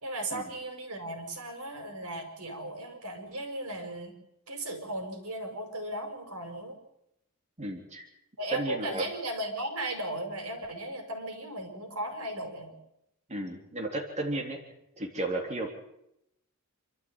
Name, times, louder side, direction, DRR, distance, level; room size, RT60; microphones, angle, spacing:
voice 1, 0.0-4.1 4.5-6.8 8.4-12.8, right 1 dB, 75° right, 5 dB, 5.4 m, -36 dB
voice 2, 7.6-8.1 8.5-9.0 13.3-14.6 15.0-15.7, right 2 dB, 30° right, 1 dB, 3.4 m, -33 dB
28.0 x 13.5 x 9.0 m, 0.81 s
head